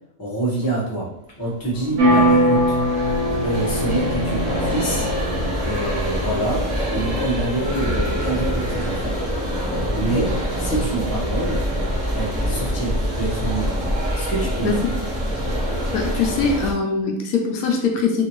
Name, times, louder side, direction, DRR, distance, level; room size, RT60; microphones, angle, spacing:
voice 1, 0.2-2.8 3.4-5.1 5.6-9.2 10.0-11.7 12.1-13.8 14.1-14.8, right 2 dB, 20° left, -6 dB, 0.7 m, -26 dB
sound 1, 1.6-16.7, equal, 25° right, 0.6 m, -25 dB
sound 2, 2.0-5.8, equal, 75° right, 1.3 m, -21 dB
voice 2, 15.9-18.2, left 4 dB, 75° left, 1 dB, 1.0 m, -22 dB
3.0 x 2.6 x 3.0 m, 0.76 s
omnidirectional pair, 1.5 m